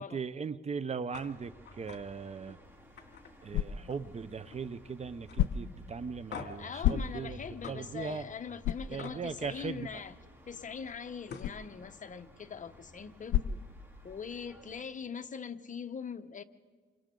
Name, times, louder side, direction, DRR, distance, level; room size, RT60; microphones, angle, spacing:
voice 1, 0.0-2.6 3.4-7.4 7.7-8.3 8.9-10.0, right 5 dB, 35° right, 15 dB, 0.7 m, -39 dB
sound 1, 1.1-1.3 1.7-2.0 2.4-2.6 3.0-4.1 4.4-4.8 5.3-5.4 6.3-6.7 7.6-7.8 9.0-9.2 10.9-11.0 11.3-11.6, left 6 dB, 60° left, 2.5 m, -45 dB
sound 2, 1.2-14.8, equal, 10° right, 3.5 m, -55 dB
sound 3, 2.6-14.4, left 11 dB, 85° left, 0.7 m, -37 dB
voice 2, 6.6-10.2 10.5-13.6 14.0-16.4, left 6 dB, 40° left, 10 dB, 1.0 m, -42 dB
29.0 x 24.5 x 3.8 m, 1.5 s
cardioid pair, 90°, 20 cm